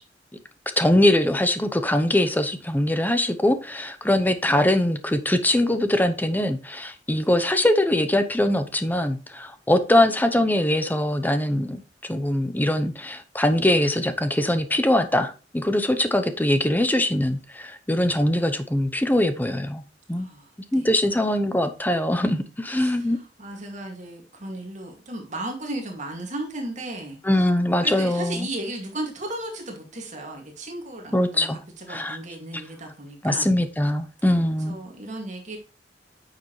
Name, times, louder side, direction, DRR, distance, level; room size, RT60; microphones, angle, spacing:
voice 1, 0.8-19.8 20.1-20.3 20.7-23.2 27.2-28.5 31.1-31.6 31.9-32.2 33.2-34.8, left 1 dB, 10° left, 9 dB, 0.8 m, -22 dB
voice 2, 20.1-20.9 22.8-27.2 27.8-33.5 34.7-35.6, right 1 dB, 40° right, 2 dB, 2.3 m, -35 dB
9.3 x 6.6 x 3.2 m, 0.32 s
head